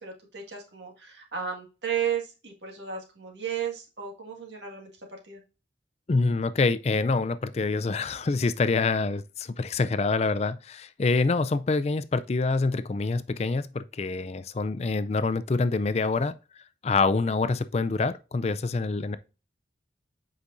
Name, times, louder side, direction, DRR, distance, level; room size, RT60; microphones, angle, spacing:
voice 1, 0.0-4.9 5.2-5.4, right 8 dB, 80° right, 1.8 m, -34 dB
voice 2, 6.1-16.3 16.8-19.2, left 3 dB, 35° left, 0.4 m, -26 dB
8.2 x 5.0 x 2.6 m
head